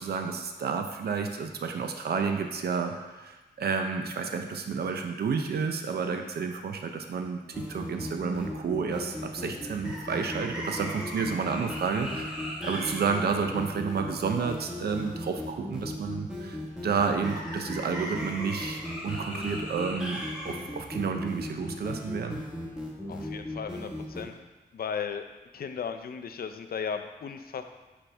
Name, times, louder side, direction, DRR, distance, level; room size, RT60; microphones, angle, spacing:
voice 1, 0.0-16.6 16.8-22.4, right 5 dB, 70° right, 5 dB, 0.6 m, -31 dB
sound 1, 7.5-24.2, left 1 dB, 5° right, 1.3 m, -36 dB
voice 2, 23.1-24.3 24.7-25.3 25.5-27.6, left 6 dB, 65° left, 7 dB, 0.5 m, -35 dB
6.2 x 5.9 x 3.3 m, 1.2 s
wide cardioid pair, 125°, 17 cm